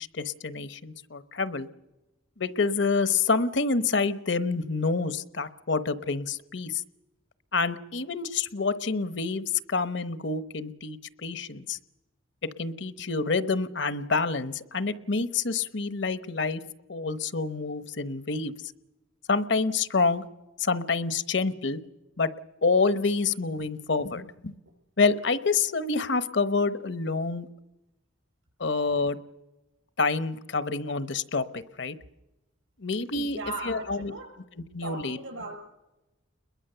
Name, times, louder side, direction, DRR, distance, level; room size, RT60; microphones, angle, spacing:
voice 1, 0.0-1.7 2.4-6.8 7.5-11.8 12.4-16.6 16.9-18.5 19.3-20.3 20.6-21.8 22.2-22.3 22.6-24.5 25.0-27.5 28.6-29.2 30.0-32.0 32.8-33.4 33.6-34.1 34.7-35.2, left 4 dB, 65° left, 14 dB, 0.9 m, -27 dB
voice 2, 33.1-34.3 34.8-35.6, right 3 dB, 85° right, 5 dB, 6.4 m, -37 dB
29.5 x 21.5 x 6.8 m, 1.0 s
head